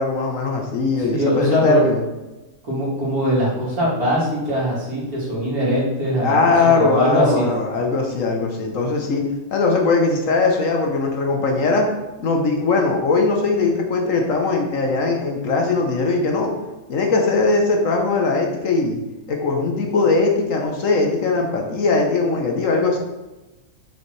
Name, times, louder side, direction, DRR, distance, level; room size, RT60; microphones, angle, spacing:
voice 1, 0.0-2.0 6.2-9.2 9.5-11.9 12.2-16.5 16.9-19.0 19.3-23.0, left 3 dB, 60° left, 2 dB, 1.3 m, -20 dB
voice 2, 1.1-1.8 2.7-6.4 6.6-7.5, equal, 70° right, -7 dB, 3.3 m, -21 dB
6.9 x 6.4 x 3.3 m, 1.1 s
omnidirectional pair, 1.6 m